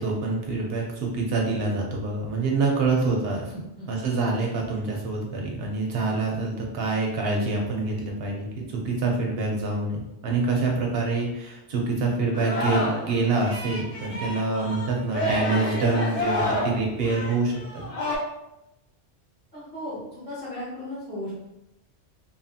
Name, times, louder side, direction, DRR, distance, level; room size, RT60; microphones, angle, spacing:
voice 1, 0.0-3.5 3.9-17.8, right 3 dB, 60° right, 0 dB, 0.8 m, -26 dB
voice 2, 3.5-3.9 14.1-14.2 19.5-21.4, left 1 dB, 10° left, -11 dB, 1.2 m, -36 dB
Singing, 12.3-13.1 13.4-18.2, left 1 dB, 40° left, 0.6 m, -29 dB
2.8 x 2.4 x 2.7 m, 0.90 s
omnidirectional pair, 1.2 m